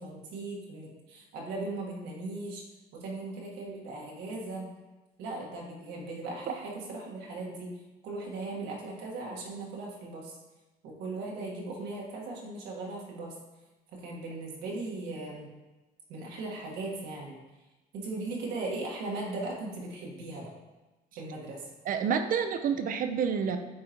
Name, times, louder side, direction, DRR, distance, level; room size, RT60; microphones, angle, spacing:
voice 1, 0.0-2.6 2.9-4.7 5.2-7.7 8.0-10.4 10.8-13.3 13.9-15.5 16.1-17.4 17.9-20.5 21.2-21.7, right 2 dB, 90° right, -2 dB, 1.6 m, -38 dB
voice 2, 21.9-23.6, right 7 dB, 55° right, 7 dB, 0.6 m, -28 dB
9.4 x 3.9 x 3.0 m, 1.1 s
cardioid pair, 110°, 17 cm